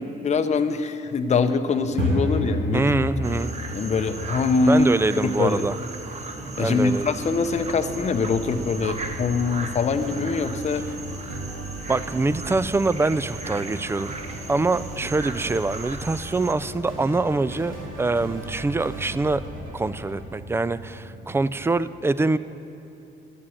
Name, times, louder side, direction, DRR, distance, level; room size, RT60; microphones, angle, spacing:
voice 1, 0.0-2.8 3.7-4.9 5.2-5.7 6.6-10.9, left 4 dB, 35° left, 8 dB, 0.6 m, -23 dB
sound 1, 1.8-21.7, equal, 60° right, 2.0 m, -35 dB
voice 2, 2.7-3.5 4.7-5.8 6.6-7.2 11.9-14.1 14.5-19.4 19.7-22.4, right 3 dB, 10° right, 16 dB, 0.3 m, -24 dB
sound 2, 3.2-16.5, right 3 dB, 35° right, 1.0 m, -38 dB
sound 3, 6.6-20.3, right 1 dB, 80° right, 2.2 m, -39 dB
11.0 x 7.5 x 8.5 m, 2.7 s
cardioid pair, 90°, 20 cm